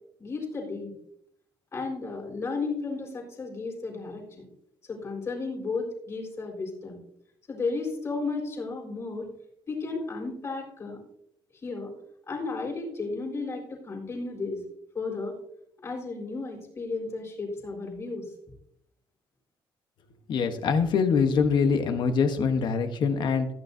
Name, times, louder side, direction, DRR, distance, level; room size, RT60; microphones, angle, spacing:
voice 1, 0.2-0.9 1.7-4.5 4.9-7.0 7.5-9.3 9.7-11.0 11.6-11.9 12.3-14.6 14.9-15.4 15.8-18.2, left 3 dB, 30° left, -1 dB, 3.9 m, -33 dB
voice 2, 20.3-23.5, left 5 dB, 50° left, 7 dB, 1.1 m, -24 dB
15.5 x 9.4 x 2.7 m, 0.73 s
cardioid pair, 175°, 9 cm